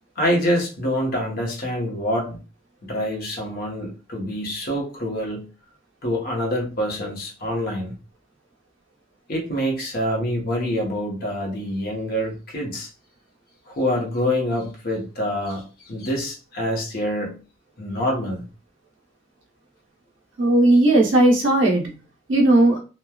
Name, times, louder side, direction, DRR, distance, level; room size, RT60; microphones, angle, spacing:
voice 1, 0.2-2.4 2.8-5.5 6.0-7.9 9.3-12.9 13.7-17.4 17.8-18.4, equal, 50° left, 0 dB, 0.9 m, -26 dB
voice 2, 20.4-21.9 22.3-22.8, right 2 dB, 75° right, -1 dB, 0.9 m, -16 dB
3.1 x 2.3 x 2.3 m, 0.34 s
head